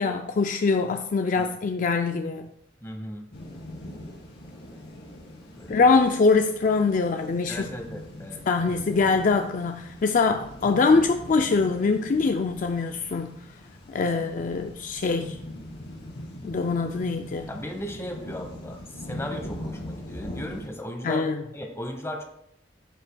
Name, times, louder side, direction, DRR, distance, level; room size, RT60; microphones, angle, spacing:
voice 1, 0.0-2.5 5.7-7.7 8.5-13.4 13.9-15.4 16.4-17.5 21.0-21.3, left 4 dB, 45° left, 6 dB, 0.4 m, -23 dB
voice 2, 2.8-3.3 5.6-5.9 7.5-8.5 14.0-14.3 17.5-21.3 21.5-22.2, left 1 dB, 15° left, 3 dB, 1.1 m, -36 dB
sound 1, 3.3-20.7, left 1 dB, 65° left, 2.1 m, -41 dB
13.5 x 5.3 x 2.3 m, 0.75 s
head